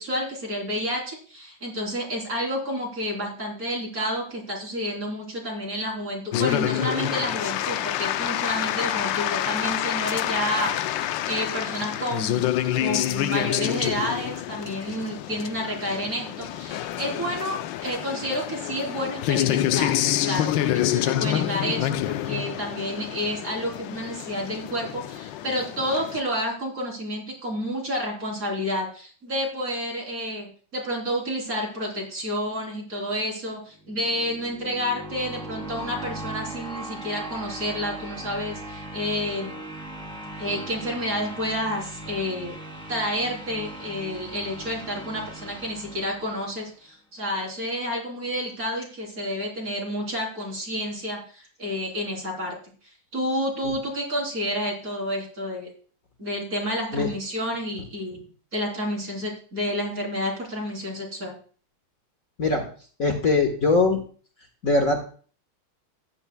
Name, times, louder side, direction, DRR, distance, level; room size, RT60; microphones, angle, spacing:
voice 1, 0.0-12.5 12.8-20.0 20.2-39.6 40.4-42.5 42.9-52.6 53.1-55.7 56.2-58.2 58.5-61.4, equal, 40° right, -1 dB, 3.9 m, -30 dB
sound 1, 6.3-26.2, left 12 dB, 75° left, 1.1 m, -27 dB
sound 2, 33.8-46.8, right 1 dB, ahead, 2.3 m, -39 dB
voice 2, 63.0-64.0 64.6-65.0, left 3 dB, 45° left, 2 dB, 1.6 m, -21 dB
14.5 x 11.5 x 2.2 m, 0.42 s
omnidirectional pair, 2.4 m